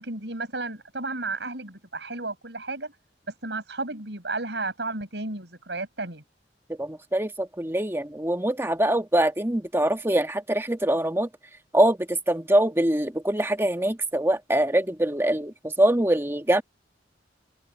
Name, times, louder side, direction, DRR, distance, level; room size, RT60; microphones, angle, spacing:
voice 1, 0.0-2.9 3.4-6.2, right 3 dB, 75° right, 5.9 m, -33 dB
voice 2, 6.8-11.3 11.7-16.6, right 1 dB, 15° right, 1.3 m, -23 dB
head